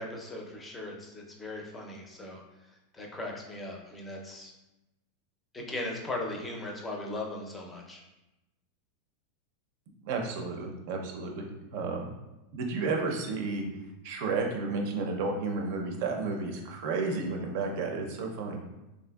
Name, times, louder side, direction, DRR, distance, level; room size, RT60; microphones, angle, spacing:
voice 1, 0.0-2.4 2.9-4.5 5.5-8.0, left 2 dB, 15° left, 0 dB, 0.5 m, -38 dB
voice 2, 10.0-12.2 12.5-13.6 14.0-18.6, right 3 dB, 60° right, 2 dB, 0.5 m, -32 dB
3.3 x 2.6 x 2.2 m, 0.99 s
supercardioid pair, 135°, 0 cm